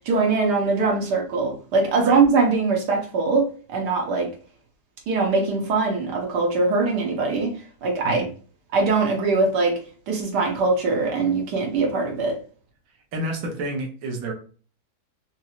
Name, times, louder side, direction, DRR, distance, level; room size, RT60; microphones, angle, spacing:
voice 1, 0.1-4.3 5.1-7.5 7.8-8.2 8.7-9.8 10.1-12.4, right 3 dB, 85° right, 1.6 m, -22 dB
voice 2, 13.1-14.3, right 2 dB, 65° right, 1.2 m, -29 dB
4.0 x 2.9 x 2.4 m
omnidirectional pair, 1.7 m